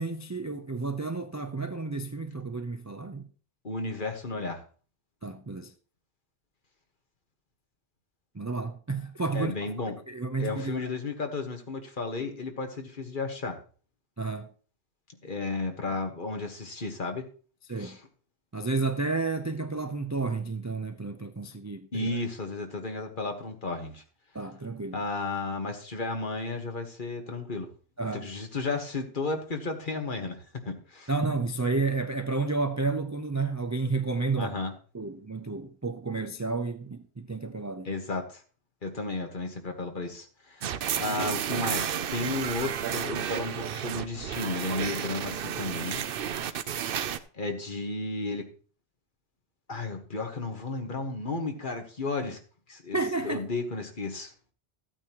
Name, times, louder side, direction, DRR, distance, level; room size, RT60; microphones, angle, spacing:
voice 1, 0.0-3.3 5.2-5.7 8.3-9.7 10.1-10.9 14.2-14.5 17.7-18.0 18.5-22.2 24.3-25.0 28.0-28.2 31.1-34.6 34.9-37.9 52.9-53.5, right 3 dB, 25° right, 0.4 m, -31 dB
voice 2, 3.6-4.6 9.3-9.9 10.4-13.6 15.2-17.3 17.8-18.0 21.9-24.0 24.9-27.7 28.1-31.1 34.4-34.7 37.8-38.4 38.8-46.0 47.3-48.5 49.7-52.4 52.7-53.0 53.2-54.3, left 3 dB, 50° left, 1.6 m, -33 dB
sound 1, 40.6-47.2, right 9 dB, 65° right, 0.8 m, -32 dB
14.0 x 8.9 x 3.0 m
omnidirectional pair, 1.1 m